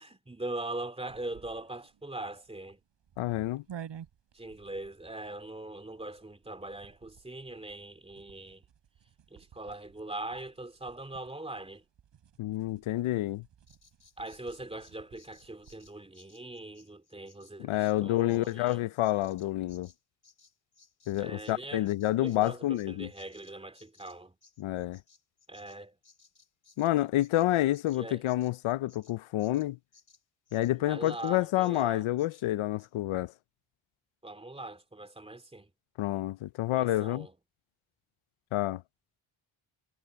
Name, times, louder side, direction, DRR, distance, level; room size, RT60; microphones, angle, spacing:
voice 1, 0.0-2.8 4.3-8.6 9.3-11.8 14.2-18.8 21.2-21.9 22.2-24.4 25.5-26.0 27.9-28.2 30.7-32.1 34.2-35.7 36.7-37.3, right 2 dB, 10° right, 2.7 m, -41 dB
sound 1, 1.1-16.0, right 9 dB, 65° right, 4.4 m, -53 dB
voice 2, 3.2-3.6 12.4-13.4 17.6-19.9 21.1-23.1 24.6-25.0 26.8-29.8 30.5-33.3 36.0-37.3 38.5-38.8, left 15 dB, 85° left, 0.7 m, -28 dB
Bird vocalization bird call bird song, 13.7-21.6 21.8-30.7 31.0-31.4 31.6-31.9 32.2-32.5 32.8-32.9, left 4 dB, 40° left, 4.7 m, -62 dB
cardioid pair, 120°, 47 cm